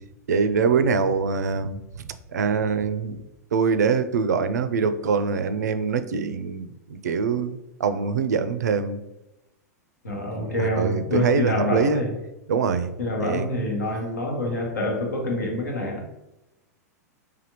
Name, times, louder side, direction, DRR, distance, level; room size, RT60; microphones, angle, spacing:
voice 1, 0.3-1.8 2.0-3.2 3.5-9.0 10.6-12.0 12.5-12.9 13.2-13.5, right 5 dB, 75° right, 11 dB, 0.4 m, -24 dB
voice 2, 10.0-12.1 13.0-16.1, left 2 dB, 80° left, 0 dB, 1.1 m, -27 dB
3.5 x 3.4 x 2.9 m, 0.96 s
hypercardioid pair, 100°, 9 cm